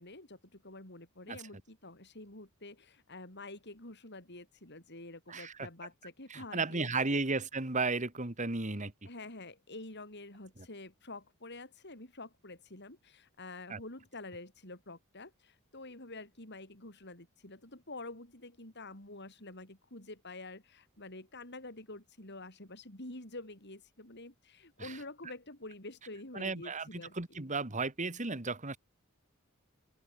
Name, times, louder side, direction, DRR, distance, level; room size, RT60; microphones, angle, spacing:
voice 1, 0.0-7.2 9.1-27.2, left 2 dB, 55° left, 7.1 m, -48 dB
voice 2, 5.3-5.7 6.3-8.9 13.7-13.8 24.8-25.0 26.3-26.9 27.1-28.8, right 3 dB, 35° right, 2.2 m, -34 dB
open air
head